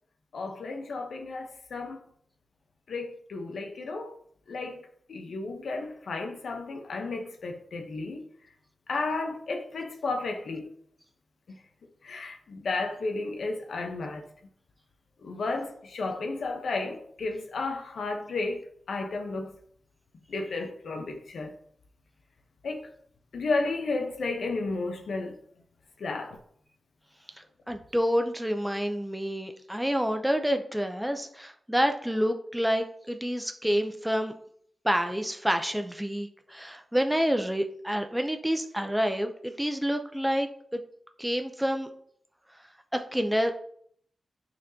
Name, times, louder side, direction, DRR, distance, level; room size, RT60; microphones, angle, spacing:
voice 1, 0.3-2.0 2.9-4.1 4.5-4.8 5.1-8.2 8.9-10.7 11.5-11.6 12.0-14.3 15.2-18.6 18.9-19.5 20.3-21.5 22.6-22.9 23.3-25.4 26.0-26.4, left 3 dB, 85° left, 0.8 m, -33 dB
voice 2, 27.7-34.3 34.8-40.5 40.7-40.8 41.2-41.9 42.9-43.5, equal, 5° right, 0.5 m, -28 dB
9.2 x 4.3 x 2.7 m
wide cardioid pair, 80°, 0 cm